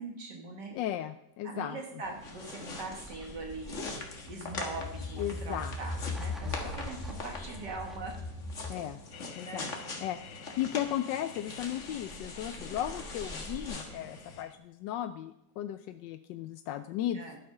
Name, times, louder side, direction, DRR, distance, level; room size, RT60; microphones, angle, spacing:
voice 1, 0.0-0.7 1.4-3.8 4.3-8.2 8.7-8.9 9.4-9.7 17.1-17.4, right 3 dB, 70° right, 2 dB, 2.0 m, -42 dB
voice 2, 0.7-1.8 5.2-5.8 6.4-6.5 8.7-9.0 9.4-9.7 10.0-17.2, left 12 dB, 85° left, 10 dB, 1.2 m, -36 dB
sound 1, 2.0-14.4, left 3 dB, 45° left, 1.9 m, -43 dB
sound 2, 2.2-8.9 11.6-13.7, left 2 dB, ahead, 1.1 m, -40 dB
sound 3, 9.1-14.5, left 9 dB, 60° left, 0.7 m, -52 dB
12.0 x 7.9 x 5.5 m, 0.83 s
omnidirectional pair, 1.9 m